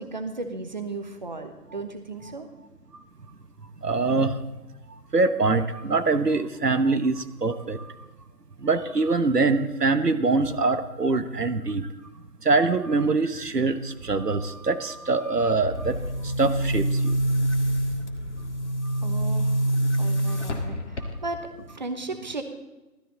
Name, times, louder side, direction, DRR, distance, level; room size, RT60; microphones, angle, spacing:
voice 1, 0.0-2.5 19.0-19.6 20.0-22.4, right 3 dB, 30° right, 7 dB, 1.2 m, -35 dB
voice 2, 3.8-4.4 5.1-7.9 8.6-11.9 12.4-16.0 16.2-17.1 20.3-20.4, right 3 dB, 80° right, 9 dB, 1.2 m, -24 dB
Boom, 15.7-21.5, right 1 dB, 45° left, 1.9 m, -26 dB
17.0 x 13.5 x 4.0 m, 1.0 s
figure-of-eight pair, 160°, 47 cm